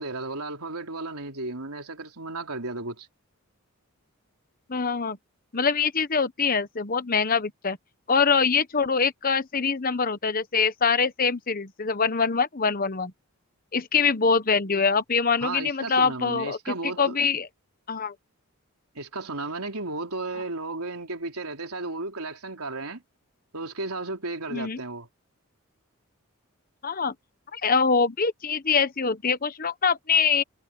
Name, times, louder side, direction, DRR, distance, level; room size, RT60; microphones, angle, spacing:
voice 1, 0.0-3.1 15.4-17.2 19.0-23.0 23.5-25.1, right 2 dB, 80° right, 3.8 m, -34 dB
voice 2, 4.7-5.2 5.5-7.8 8.1-13.1 13.7-17.5 17.9-18.1 24.5-24.8 26.8-27.1 27.5-30.4, left 5 dB, 40° left, 1.1 m, -24 dB
head